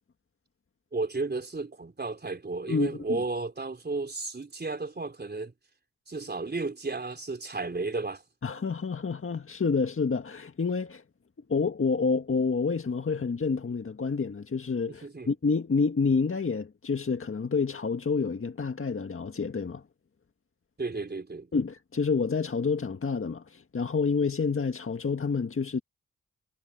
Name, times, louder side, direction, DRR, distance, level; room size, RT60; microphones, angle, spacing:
voice 1, 0.9-5.5 6.1-8.2 14.9-15.3 20.8-21.5, right 3 dB, 35° right, 3.8 m, -33 dB
voice 2, 8.4-11.0 11.5-19.8 21.5-25.8, left 4 dB, 45° left, 1.8 m, -28 dB
cardioid pair, 50°, 30 cm